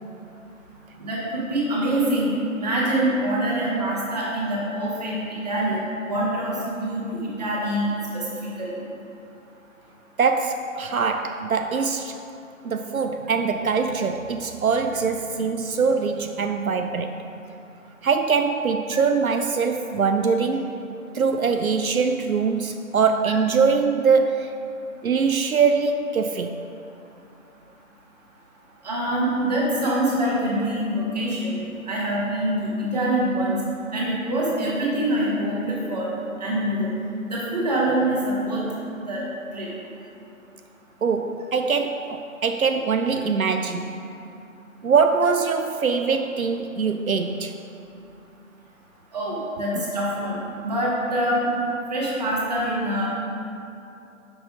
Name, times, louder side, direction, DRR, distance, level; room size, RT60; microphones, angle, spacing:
voice 1, 1.0-5.1 5.4-7.9 8.1-8.8 28.8-33.6 33.9-36.1 36.4-36.9 37.2-38.6 39.1-39.2 39.5-39.7 49.1-50.4 50.6-51.5 51.9-53.1, right 1 dB, 30° right, -5 dB, 1.6 m, -25 dB
voice 2, 10.2-12.2 12.6-17.2 18.0-20.7 21.1-24.5 25.0-26.6 41.0-44.0 44.8-47.5 49.8-49.9, right 5 dB, 85° right, 7 dB, 0.5 m, -23 dB
9.7 x 5.9 x 3.8 m, 2.7 s
figure-of-eight pair, 150°, 41 cm